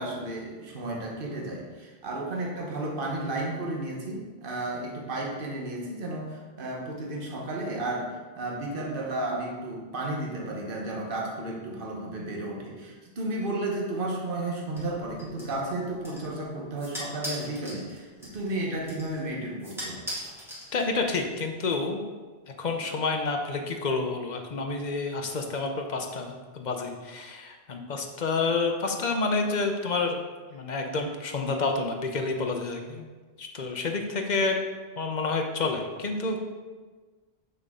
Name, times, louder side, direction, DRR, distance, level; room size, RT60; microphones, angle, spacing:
voice 1, 0.0-20.0, right 2 dB, 55° right, -2 dB, 1.3 m, -33 dB
sound 1, 14.7-21.2, equal, ahead, 1.8 m, -41 dB
voice 2, 20.7-22.0 22.6-30.2 30.5-33.0 33.4-34.6 35.0-36.4, left 3 dB, 45° left, 3 dB, 0.8 m, -29 dB
6.6 x 6.1 x 3.7 m, 1.4 s
omnidirectional pair, 1.1 m